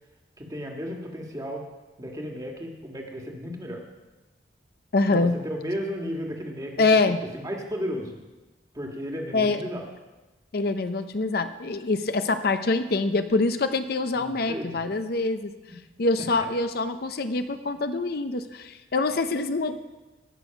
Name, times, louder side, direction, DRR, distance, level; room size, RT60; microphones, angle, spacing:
voice 1, 0.4-1.6 2.0-3.8 5.1-6.7 7.1-8.2 8.7-9.9 14.1-14.9 16.4-16.5, equal, 20° right, 1 dB, 1.6 m, -34 dB
voice 2, 4.9-5.4 6.8-7.2 9.3-9.6 10.5-15.5 16.0-19.8, left 3 dB, 60° left, 9 dB, 0.6 m, -25 dB
18.5 x 6.2 x 5.8 m, 1.1 s
head